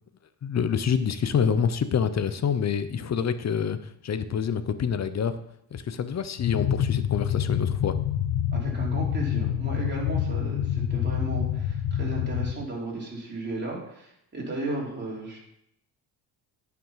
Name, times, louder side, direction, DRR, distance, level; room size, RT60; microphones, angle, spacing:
voice 1, 0.4-3.8 4.0-5.4 5.7-8.0, left 7 dB, 40° left, 12 dB, 0.8 m, -26 dB
sound 1, 6.4-12.5, left 9 dB, 60° left, 1.1 m, -27 dB
voice 2, 8.5-15.4, right 2 dB, 25° right, -3 dB, 3.8 m, -35 dB
9.9 x 6.1 x 5.7 m, 0.77 s
cardioid pair, 105°, 44 cm